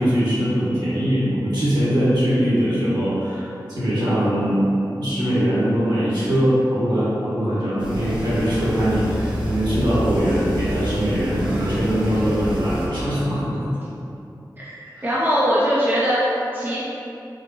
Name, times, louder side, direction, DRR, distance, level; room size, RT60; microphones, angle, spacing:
voice 1, 0.0-4.7 4.9-13.7 15.0-15.1, equal, 70° right, -10 dB, 1.4 m, -21 dB
sound 1, 7.8-12.9, equal, 85° right, 0.8 m, -27 dB
voice 2, 14.6-16.8, equal, 25° right, -7 dB, 0.5 m, -21 dB
4.3 x 2.1 x 3.2 m, 2.8 s
wide cardioid pair, 85°, 8 cm